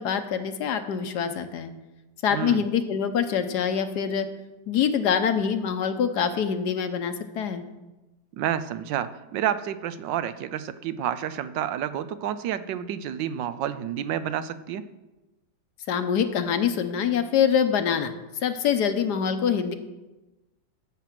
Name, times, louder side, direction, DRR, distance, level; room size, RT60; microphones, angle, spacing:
voice 1, 0.0-1.7 2.2-4.3 4.7-7.7 15.9-18.1 18.4-19.7, left 7 dB, 65° left, 9 dB, 1.3 m, -25 dB
voice 2, 2.3-2.6 8.4-14.8, right 10 dB, 85° right, 13 dB, 1.4 m, -29 dB
13.0 x 7.6 x 5.9 m, 1.1 s
omnidirectional pair, 2.0 m